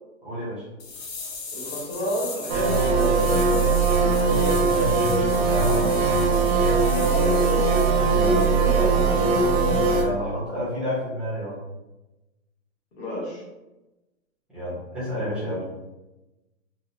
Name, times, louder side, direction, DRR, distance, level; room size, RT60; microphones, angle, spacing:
voice 1, 0.2-0.6 4.7-5.9 8.1-8.6 9.9-11.5 14.5-15.7, equal, ahead, -10 dB, 0.5 m, -30 dB
sound 1, 0.8-7.9 8.3-8.5, left 4 dB, 50° left, 0.7 m, -38 dB
voice 2, 1.5-4.5 7.1-7.8 8.7-8.8 9.1-9.4 13.0-13.4, equal, 30° left, -5 dB, 1.0 m, -32 dB
sound 2, 2.5-10.0, right 4 dB, 50° right, 0.6 m, -20 dB
2.9 x 2.0 x 2.6 m, 1.0 s
hypercardioid pair, 150°, 41 cm